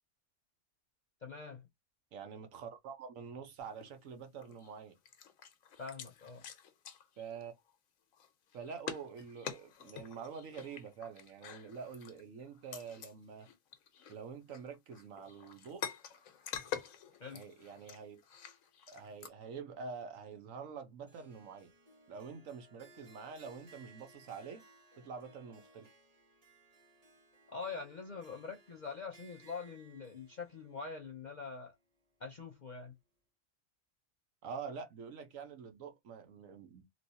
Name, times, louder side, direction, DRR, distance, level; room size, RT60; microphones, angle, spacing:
voice 1, 1.2-1.7 5.8-6.5 17.2-17.4 27.5-31.7 32.2-32.9, left 5 dB, 50° left, 0.6 m, -44 dB
voice 2, 2.1-4.9 7.2-7.5 8.5-13.5 14.1-15.8 17.3-18.2 18.9-21.7 22.1-24.6 25.0-25.9 34.4-36.8, right 6 dB, 80° right, 1.3 m, -46 dB
sound 1, 3.6-4.0 4.4-4.7 5.1-7.8 8.1-13.1 13.4-19.3, left 8 dB, 85° left, 1.2 m, -47 dB
Harp, 21.1-32.3, right 2 dB, 30° right, 0.9 m, -63 dB
3.1 x 3.0 x 2.7 m
omnidirectional pair, 1.4 m